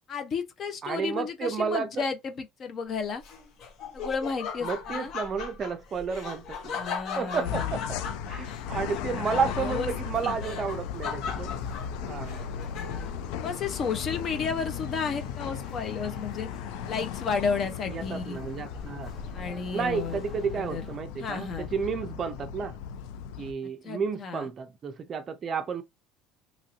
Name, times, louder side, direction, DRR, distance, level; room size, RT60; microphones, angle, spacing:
voice 1, 0.1-3.2 3.9-5.1 6.7-7.8 8.7-9.9 10.2-10.4 12.7-13.1 13.4-16.5 16.9-18.4 19.3-20.2 20.5-20.9 21.2-21.7 23.8-24.5, left 5 dB, 35° left, 0.6 m, -33 dB
voice 2, 0.8-2.0 4.6-6.8 7.2-7.8 8.3-11.5 12.1-12.5 17.9-19.1 19.7-22.7 23.4-25.8, right 6 dB, 30° right, 0.4 m, -31 dB
Laughter, 3.2-13.2, left 6 dB, 50° left, 0.9 m, -38 dB
sound 1, 7.4-23.5, left 9 dB, 75° left, 0.3 m, -36 dB
sound 2, 9.6-21.0, left 1 dB, 10° left, 1.1 m, -48 dB
3.0 x 2.6 x 2.7 m
cardioid pair, 150°, 0 cm